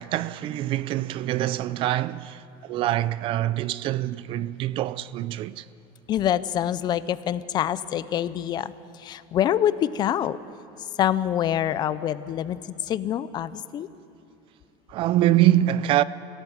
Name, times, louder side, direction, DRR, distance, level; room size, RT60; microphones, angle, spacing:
voice 1, 0.0-5.6 14.9-16.0, right 13 dB, 40° right, 0.5 m, -24 dB
voice 2, 6.1-10.4 11.0-13.9, left 10 dB, 30° left, 0.5 m, -26 dB
25.5 x 16.5 x 7.3 m
cardioid pair, 155°, 14 cm